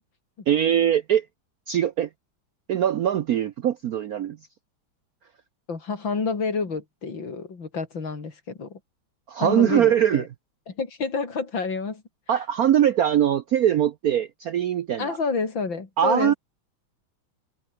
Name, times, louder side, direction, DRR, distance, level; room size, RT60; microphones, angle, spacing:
voice 1, 0.5-1.3 1.7-2.1 2.7-4.4 9.3-10.2 12.3-15.2 16.0-16.3, right 10 dB, 65° right, 0.9 m, -22 dB
voice 2, 5.7-8.8 9.4-10.3 10.7-12.0 15.0-16.4, left 4 dB, 65° left, 4.1 m, -29 dB
omnidirectional pair, 2.3 m